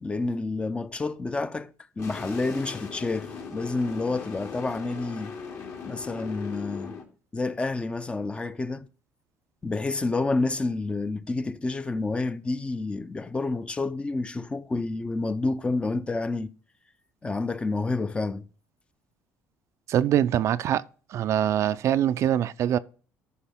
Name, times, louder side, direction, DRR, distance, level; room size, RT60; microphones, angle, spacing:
voice 1, 0.0-5.3 5.9-6.9 7.3-8.9 9.6-16.5 17.2-18.4, left 3 dB, 20° left, 0.5 m, -29 dB
sound 1, 2.0-7.0, left 5 dB, 55° left, 2.5 m, -39 dB
voice 2, 19.9-20.8 21.1-22.8, right 10 dB, 55° right, 0.4 m, -23 dB
13.0 x 5.3 x 3.5 m
cardioid pair, 100°, 6 cm